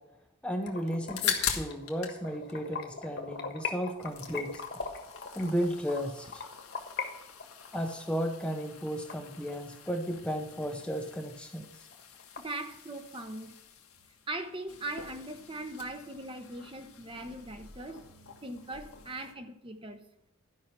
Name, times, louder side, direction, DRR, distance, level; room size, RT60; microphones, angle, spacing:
voice 1, 0.4-4.6 5.4-6.4 7.7-11.7, equal, 5° left, 3 dB, 0.7 m, -34 dB
sound 1, 0.6-7.1 7.4-9.9 10.3-10.4 10.8-10.9 11.3-11.4 11.6-12.4, left 5 dB, 50° left, 1.4 m, -40 dB
sound 2, 0.9-2.2 2.5-3.5 3.8-19.3, left 8 dB, 85° left, 1.5 m, -42 dB
voice 2, 12.4-13.5 14.3-18.0 18.4-20.0, right 2 dB, 25° right, 7 dB, 0.8 m, -40 dB
12.0 x 5.7 x 5.8 m, 0.85 s
head